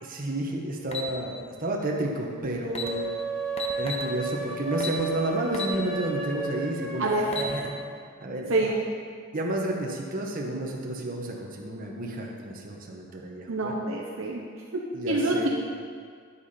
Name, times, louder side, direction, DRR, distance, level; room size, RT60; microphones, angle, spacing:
voice 1, 0.0-3.0 3.8-7.7 8.2-8.7 9.3-13.7 14.9-15.5, right 1 dB, 40° right, -1 dB, 1.2 m, -31 dB
sound 1, 0.9-1.1 2.3-2.4 2.7-2.9 3.6-4.1 4.8-5.0 5.5-5.8 6.2-6.3 7.1-7.5, left 4 dB, 30° left, 0.8 m, -33 dB
sound 2, 2.8-7.8, right 3 dB, ahead, 1.8 m, -33 dB
voice 2, 13.5-14.4 14.7-15.5, right 2 dB, 65° right, -1 dB, 0.9 m, -26 dB
9.7 x 8.2 x 4.3 m, 2.1 s
head